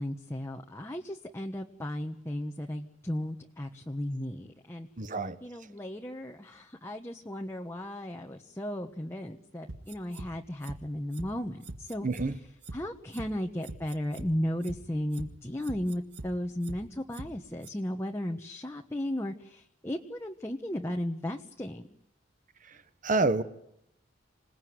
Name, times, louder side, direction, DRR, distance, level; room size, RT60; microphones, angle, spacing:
voice 1, 0.0-4.9 5.4-12.1 12.7-21.9, left 1 dB, 15° left, 2 dB, 1.2 m, -35 dB
voice 2, 5.0-5.4 12.0-12.3 23.0-23.4, right 3 dB, 45° right, 12 dB, 1.2 m, -27 dB
sound 1, 9.7-10.3 10.6-10.8 11.1-11.3 11.6-12.3 12.6-12.8 13.1-13.3 13.6-14.3 14.6-14.8 15.1-15.3 15.6-16.3 16.6-16.8 17.1-17.3 17.6-17.7, right 2 dB, 65° right, 1.9 m, -41 dB
27.0 x 18.5 x 9.5 m, 0.77 s
head